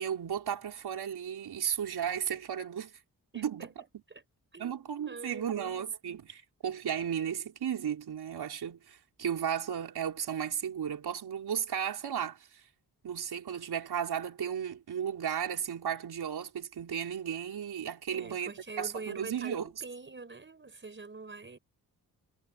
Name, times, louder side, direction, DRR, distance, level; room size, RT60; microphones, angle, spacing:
voice 1, 0.0-3.0 3.3-3.7 4.6-12.6 13.0-19.7, right 8 dB, 90° right, 4.7 m, -34 dB
voice 2, 3.3-4.2 4.5-5.7 18.1-21.6, right 4 dB, 30° right, 4.9 m, -45 dB
wide cardioid pair, 95°, 37 cm